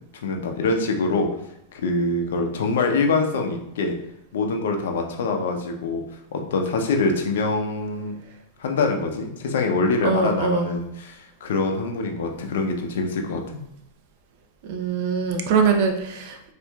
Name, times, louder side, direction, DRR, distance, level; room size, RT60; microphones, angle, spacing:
voice 1, 0.2-1.3 1.7-3.9 4.3-6.0 6.3-8.1 8.6-13.4, left 3 dB, 80° left, 3 dB, 0.6 m, -24 dB
voice 2, 10.0-10.7 14.6-16.4, right 5 dB, 55° right, 4 dB, 0.6 m, -22 dB
4.5 x 2.5 x 2.3 m, 0.79 s
supercardioid pair, 135°, 0 cm